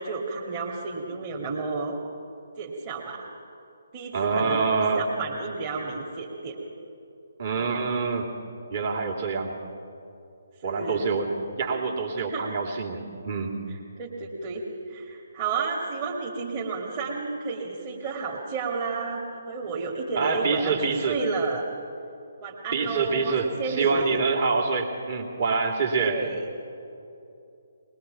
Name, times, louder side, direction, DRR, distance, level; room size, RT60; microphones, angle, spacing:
voice 1, 0.0-2.0 2.6-3.3 3.9-4.7 5.0-6.6 7.5-7.7 10.6-11.2 12.2-12.5 13.7-21.7 22.4-24.2 26.0-26.5, right 4 dB, 25° right, -4 dB, 2.1 m, -32 dB
voice 2, 4.1-5.1 7.4-8.3 8.7-9.6 10.6-13.5 20.2-21.2 22.7-26.2, right 4 dB, 40° right, 1 dB, 2.8 m, -26 dB
21.5 x 21.0 x 5.9 m, 2.7 s
figure-of-eight pair, 140°, 0 cm